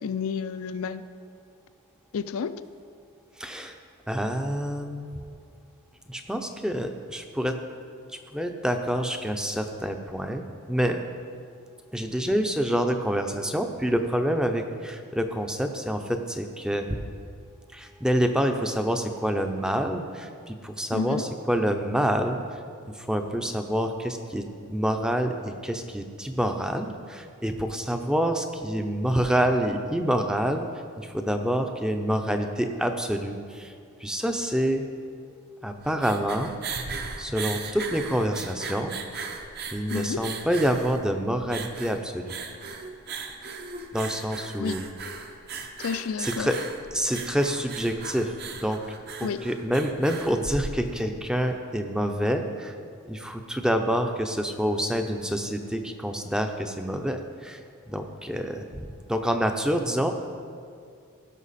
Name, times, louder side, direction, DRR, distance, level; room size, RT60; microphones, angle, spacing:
voice 1, 0.0-1.0 2.1-2.6 20.9-21.3 39.9-40.2 44.6-44.8 45.8-46.5 49.2-49.4, left 5 dB, 65° left, 13 dB, 0.4 m, -30 dB
voice 2, 3.4-3.8 4.1-5.1 6.1-7.6 8.1-11.0 11.9-17.0 17.7-22.6 22.9-30.7 31.0-33.7 34.0-34.8 35.6-36.5 37.2-38.9 39.7-42.4 43.9-44.9 46.2-48.8 49.2-52.8 53.0-57.6 57.9-60.1, equal, 5° right, 6 dB, 0.5 m, -27 dB
sound 1, 35.7-51.2, right 4 dB, 45° right, 0.7 m, -38 dB
16.5 x 6.0 x 4.1 m, 2.2 s
head